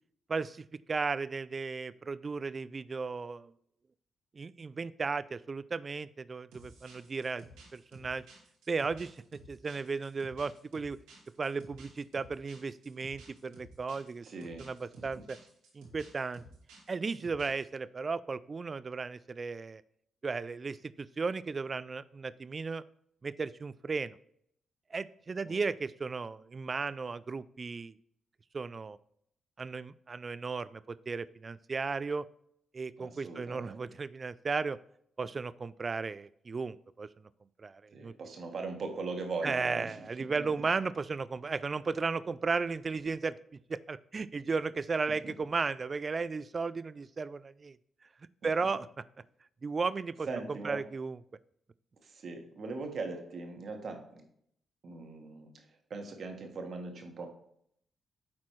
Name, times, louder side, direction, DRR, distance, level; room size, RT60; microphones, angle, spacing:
voice 1, 0.3-3.5 4.4-7.4 7.7-8.2 8.7-11.0 11.4-14.2 14.6-15.4 15.7-16.4 16.9-19.8 20.2-20.8 21.2-22.8 23.2-24.2 24.9-27.9 28.5-29.0 29.6-32.3 32.7-34.8 35.2-37.1 37.6-38.1 39.4-43.4 43.7-47.8 48.4-48.9 49.6-50.3 50.6-51.2, right 4 dB, 45° right, 17 dB, 0.3 m, -35 dB
sound 1, 6.5-17.7, right 2 dB, 90° right, 1.8 m, -54 dB
voice 2, 14.2-14.6 15.0-15.1 25.5-25.6 33.0-33.8 37.9-40.0 40.3-40.4 45.2-45.3 50.3-50.8 52.0-54.0 54.8-57.3, right 3 dB, 60° right, 4 dB, 1.4 m, -40 dB
8.3 x 4.3 x 3.2 m, 0.69 s
supercardioid pair, 50°, 0 cm